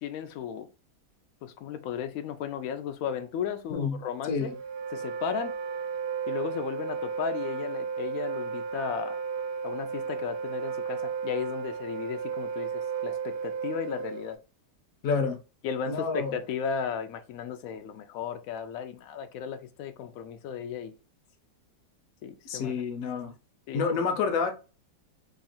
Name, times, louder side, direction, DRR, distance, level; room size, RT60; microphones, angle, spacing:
voice 1, 0.0-0.7 1.4-4.5 4.9-5.6 6.3-9.2 9.6-14.4 15.6-20.9 22.2-22.7 23.7-23.8, left 7 dB, 90° left, 0.7 m, -35 dB
voice 2, 3.7-4.5 15.0-15.4 15.9-16.4 22.4-23.3 23.7-24.5, left 5 dB, 65° left, 0.9 m, -29 dB
Wind instrument woodwind instrument, 4.4-14.3, right 6 dB, 75° right, 1.3 m, -34 dB
3.1 x 2.5 x 4.1 m
omnidirectional pair, 2.0 m